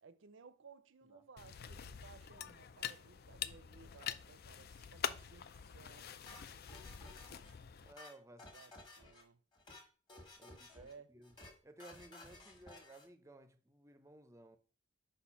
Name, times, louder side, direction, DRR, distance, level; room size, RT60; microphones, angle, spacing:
voice 1, 0.0-6.1 8.5-9.4 10.4-11.1, right 5 dB, 65° right, 0.5 m, -59 dB
sound 1, 1.4-7.9, left 8 dB, 50° left, 0.4 m, -45 dB
sound 2, 6.3-7.5 7.8-9.2 9.5-9.8 10.1-10.9 11.2-11.5 11.8-13.1, left 2 dB, 25° left, 1.4 m, -56 dB
voice 2, 6.4-7.0 7.8-8.6 10.4-11.3 11.6-14.6, right 1 dB, 15° right, 0.6 m, -58 dB
5.1 x 4.2 x 5.6 m
head